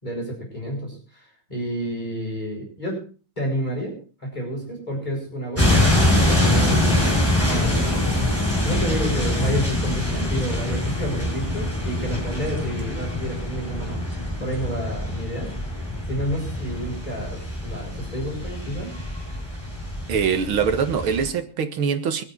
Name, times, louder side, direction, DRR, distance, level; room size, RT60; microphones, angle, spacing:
voice 1, 0.0-3.0 3.4-5.9 6.1-8.1 8.6-15.5 16.1-18.9, right 1 dB, 20° left, 7.7 m, -30 dB
sound 1, 5.6-21.3, left 1 dB, 5° right, 6.5 m, -24 dB
voice 2, 20.1-22.2, right 6 dB, 80° right, 2.4 m, -23 dB
24.5 x 9.4 x 4.7 m
omnidirectional pair, 2.3 m